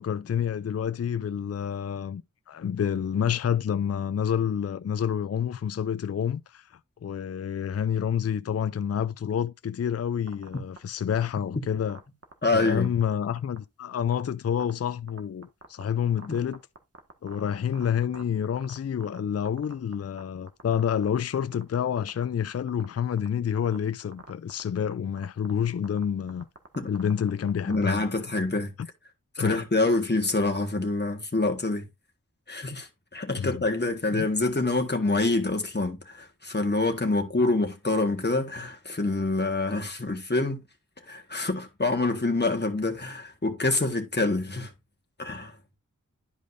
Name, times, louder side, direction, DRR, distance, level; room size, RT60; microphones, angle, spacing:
voice 1, 0.0-2.2 2.5-12.0 12.5-16.6 17.2-26.5 26.9-28.1 28.8-28.9 29.4-29.6 33.4-33.6 34.1-34.3, left 8 dB, 50° left, 0.4 m, -28 dB
sound 1, 10.3-10.8 11.2-11.4 11.9-13.1 13.4-13.6 14.0-14.2 14.6-14.7 15.1-15.8 16.2-19.2 19.4-20.2 20.5-21.1 21.4-22.2 22.7-23.3 23.6-23.8 24.1-24.6 24.9-25.0 25.2-25.5 25.8-27.8, right 3 dB, 45° right, 1.6 m, -45 dB
voice 2, 12.4-12.9 16.3-16.4 26.7-26.9 27.7-28.7 29.3-31.8 32.5-40.6 41.0-44.7 45.2-45.5, left 2 dB, 30° left, 1.4 m, -26 dB
11.0 x 5.1 x 2.6 m
wide cardioid pair, 45°, 32 cm